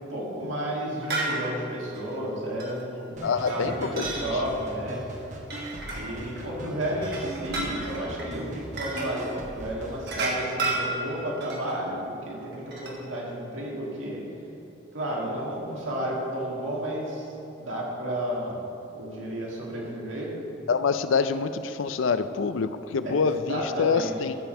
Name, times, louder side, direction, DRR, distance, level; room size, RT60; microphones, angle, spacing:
voice 1, 0.0-5.0 6.0-14.3 14.9-17.3 17.6-18.6 18.9-20.4 23.0-24.2, right 1 dB, 90° right, -3 dB, 2.1 m, -32 dB
sound 1, 1.0-1.4 2.0-2.2 2.6-2.8 3.2-4.3 5.4-6.5 6.9-8.3 8.8-9.1 10.0-11.8 12.5-12.9, right 3 dB, 55° right, 1.5 m, -32 dB
voice 2, 3.2-4.1 20.7-24.4, left 5 dB, 85° left, 12 dB, 0.4 m, -26 dB
sound 2, 3.2-10.0, right 1 dB, 40° right, 1.0 m, -40 dB
13.5 x 5.3 x 4.4 m, 2.9 s
head